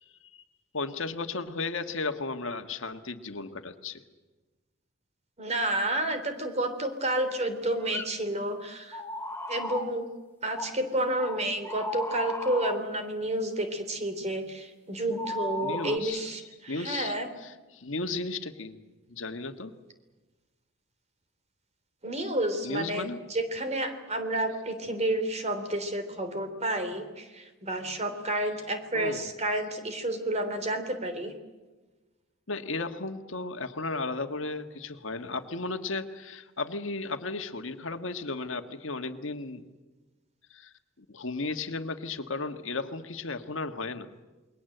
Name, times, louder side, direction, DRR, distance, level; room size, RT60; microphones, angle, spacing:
voice 1, 0.0-0.4 0.7-4.0 15.6-16.2 16.7-18.8 19.1-19.7 22.6-23.2 28.9-29.3 32.5-39.7 40.5-44.1, left 3 dB, 70° left, 8 dB, 1.6 m, -35 dB
voice 2, 5.4-9.0 9.5-10.1 10.4-17.3 22.0-31.3, right 1 dB, 35° right, 8 dB, 3.5 m, -30 dB
sound 1, 7.7-8.1 8.9-9.9 10.6-10.7 11.2-12.8 15.1-16.0, left 1 dB, 10° left, 1.7 m, -35 dB
28.5 x 22.0 x 7.9 m, 1.2 s
head